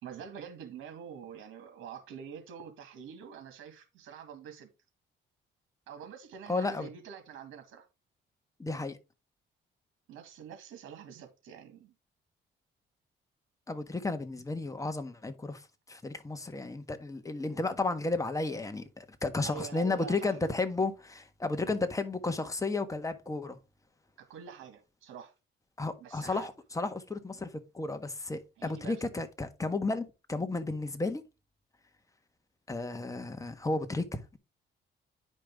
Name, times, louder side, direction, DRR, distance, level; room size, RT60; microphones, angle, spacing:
voice 1, 0.0-4.7 5.9-7.9 10.1-11.9 19.4-20.5 24.3-25.3 26.0-26.5 28.6-29.0, right 8 dB, 90° right, 1.8 m, -46 dB
voice 2, 6.5-6.9 8.6-9.0 13.7-15.6 15.9-23.6 25.8-31.2 32.7-34.4, left 3 dB, 15° left, 1.4 m, -33 dB
9.8 x 5.3 x 3.6 m
cardioid pair, 90°, 20 cm